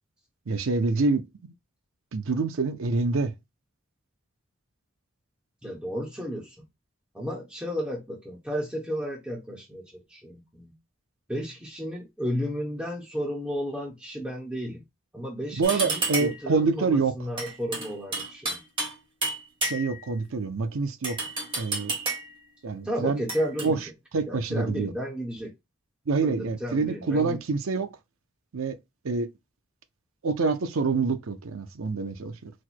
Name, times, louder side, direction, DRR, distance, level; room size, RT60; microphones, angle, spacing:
voice 1, 0.5-1.5 2.1-3.3 15.5-17.1 19.6-21.2 21.6-22.0 22.6-23.2 23.6-23.8 24.1-24.9 26.1-27.9 28.5-28.8 29.0-29.3 30.2-32.5, right 4 dB, 85° right, 0.6 m, -26 dB
voice 2, 5.6-6.6 7.1-10.7 11.3-14.8 15.1-18.6 22.8-23.9 24.2-25.5 26.2-27.4, equal, 5° right, 1.0 m, -33 dB
sound 1, 15.6-16.5 17.4-19.0 19.2-20.1 21.0-22.4 23.3-23.7, right 2 dB, 25° right, 1.2 m, -31 dB
4.2 x 2.1 x 4.4 m
head